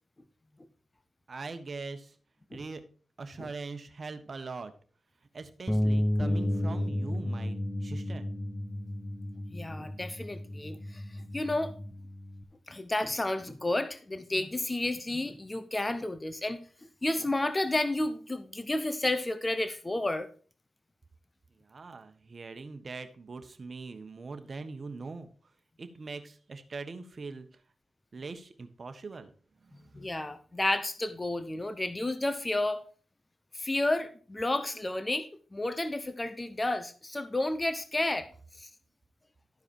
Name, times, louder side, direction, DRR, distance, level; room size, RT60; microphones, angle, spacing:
voice 1, 1.3-2.1 2.5-2.8 3.2-4.7 5.3-8.3 21.6-25.3 25.8-27.5 28.1-29.3 29.6-29.9, right 4 dB, 50° right, 8 dB, 1.3 m, -42 dB
Bass guitar, 5.7-11.9, equal, 5° left, 0.4 m, -33 dB
Bass guitar 2, 6.2-12.4, left 1 dB, 40° left, 1.6 m, -39 dB
voice 2, 9.5-11.0 11.3-11.7 12.7-16.6 17.0-20.3 29.9-32.8 33.5-38.3 38.6-38.7, left 2 dB, 25° left, 11 dB, 0.9 m, -31 dB
13.0 x 4.8 x 4.6 m, 0.41 s
supercardioid pair, 45°, 0 cm